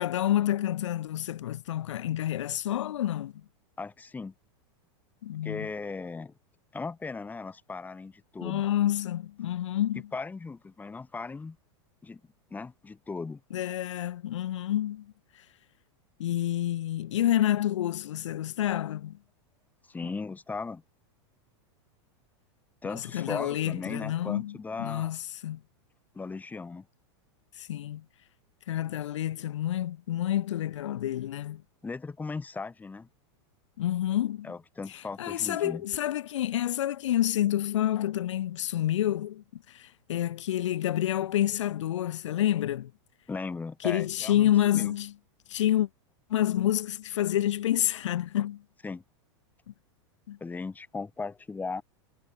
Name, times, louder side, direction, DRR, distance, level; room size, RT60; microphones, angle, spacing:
voice 1, 0.0-3.3 5.2-5.7 8.4-10.0 13.5-15.1 16.2-19.2 22.8-25.6 27.6-28.0 28.7-31.6 33.8-34.5 34.9-42.9 43.8-45.1 45.5-45.9 46.3-48.6 50.3-50.4, left 12 dB, 85° left, 5.4 m, -28 dB
voice 2, 3.8-4.3 5.4-6.3 6.7-8.7 10.1-11.6 12.0-12.2 12.5-13.4 19.9-20.8 22.8-25.1 26.1-26.8 31.8-33.1 34.4-35.8 43.3-44.9 48.8-49.0 50.4-51.8, left 4 dB, 10° left, 6.5 m, -37 dB
supercardioid pair, 145°, 15 cm